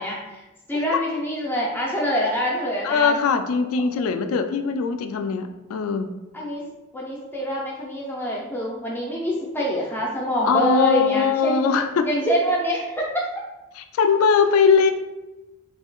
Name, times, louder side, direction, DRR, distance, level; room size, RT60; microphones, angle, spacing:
voice 1, 0.0-3.2 6.3-6.6 6.9-11.6 12.0-13.2, equal, 10° left, -3 dB, 0.5 m, -25 dB
voice 2, 2.8-6.1 10.5-12.1 13.8-14.9, left 5 dB, 80° left, 8 dB, 0.3 m, -21 dB
3.6 x 3.2 x 2.3 m, 1.0 s
head